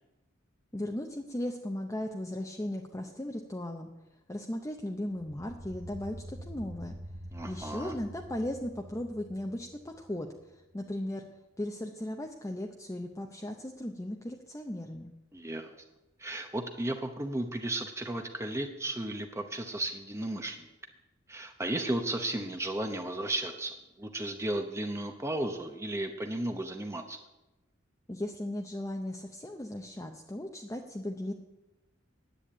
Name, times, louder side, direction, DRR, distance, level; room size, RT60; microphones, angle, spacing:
voice 1, 0.7-3.9 4.3-6.9 7.4-11.2 11.6-15.1 28.1-31.3, left 1 dB, 15° left, 2 dB, 0.8 m, -37 dB
sound 1, 5.1-10.4, equal, 90° right, 1.2 m, -46 dB
voice 2, 7.3-7.9 15.3-15.7 16.2-20.7 21.3-27.2, right 1 dB, 15° right, 5 dB, 0.8 m, -34 dB
10.0 x 8.6 x 8.5 m, 1.0 s
head